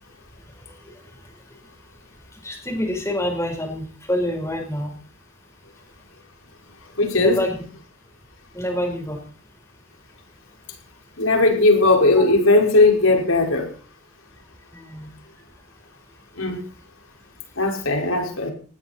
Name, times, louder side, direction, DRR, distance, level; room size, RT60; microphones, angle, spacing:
voice 1, 2.4-5.0 7.1-7.6 8.5-9.2 14.7-15.1, equal, 15° left, 4 dB, 4.6 m, -26 dB
voice 2, 7.0-7.4 11.2-13.7 16.4-16.6 17.6-18.5, left 2 dB, 85° left, 2 dB, 5.2 m, -17 dB
19.0 x 15.5 x 4.4 m, 0.39 s
head